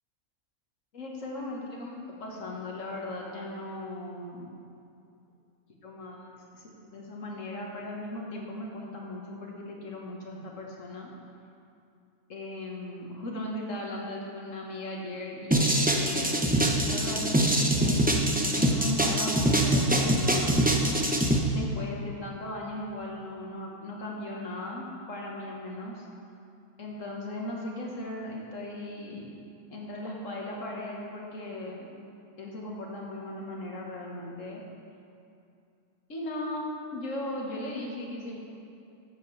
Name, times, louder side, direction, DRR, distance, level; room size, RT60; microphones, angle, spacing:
voice 1, 0.9-4.5 5.8-11.1 12.3-16.5 16.8-20.6 21.5-26.1 26.8-29.3 29.7-31.9 32.4-34.6 36.1-38.4, left 1 dB, 60° left, -2 dB, 1.8 m, -37 dB
sound 1, 15.5-21.4, right 1 dB, 15° right, 0.4 m, -24 dB
13.0 x 8.1 x 3.3 m, 2.6 s
omnidirectional pair, 1.5 m